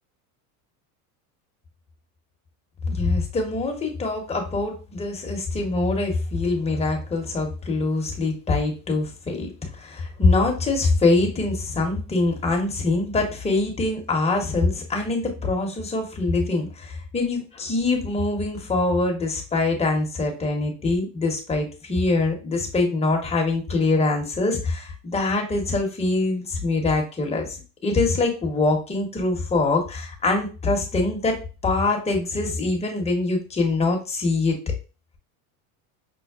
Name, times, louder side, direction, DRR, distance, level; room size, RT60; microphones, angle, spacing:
voice 1, 2.9-27.5 27.8-34.6, left 3 dB, 15° left, 1 dB, 0.8 m, -24 dB
5.4 x 2.0 x 2.4 m, 0.33 s
supercardioid pair, 125°, 43 cm